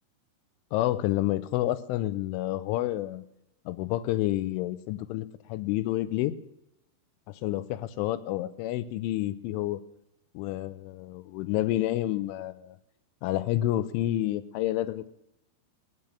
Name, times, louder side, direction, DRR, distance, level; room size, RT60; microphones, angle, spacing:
voice 1, 0.7-3.2 3.7-6.3 7.3-9.8 10.3-12.8 13.2-15.1, left 15 dB, 80° left, 14 dB, 3.0 m, -29 dB
17.0 x 9.2 x 7.3 m, 0.82 s
omnidirectional pair, 5.9 m